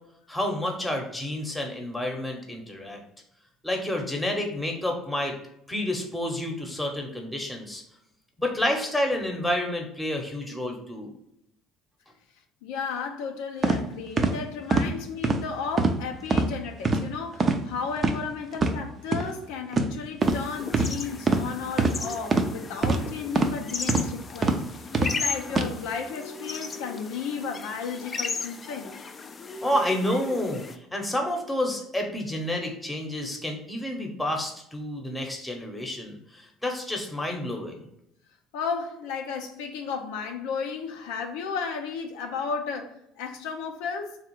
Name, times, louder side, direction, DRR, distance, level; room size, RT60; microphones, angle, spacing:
voice 1, 0.3-3.0 3.6-5.4 5.7-7.8 8.4-11.1 29.6-37.8, left 1 dB, 10° left, 0.9 m, -29 dB
voice 2, 12.6-28.9 38.5-44.2, left 5 dB, 90° left, 0.5 m, -34 dB
sound 1, 13.6-13.8 14.2-14.3 14.7-14.9 15.2-15.4 15.8-16.0 16.3-16.5 16.8-17.0 17.4-17.6 18.0-18.1 18.5-18.7 19.1-19.2 19.7-19.9 20.2-20.4 20.7-20.9 21.3-21.4 21.8-21.9 22.3-22.5 22.8-23.0 23.3-23.5 23.9-24.1 24.4-24.6 24.9-25.1 25.5-25.7, right 3 dB, 35° right, 0.5 m, -22 dB
sound 2, 20.2-30.8, left 4 dB, 30° left, 0.4 m, -36 dB
3.5 x 2.4 x 4.5 m
supercardioid pair, 105°, 0 cm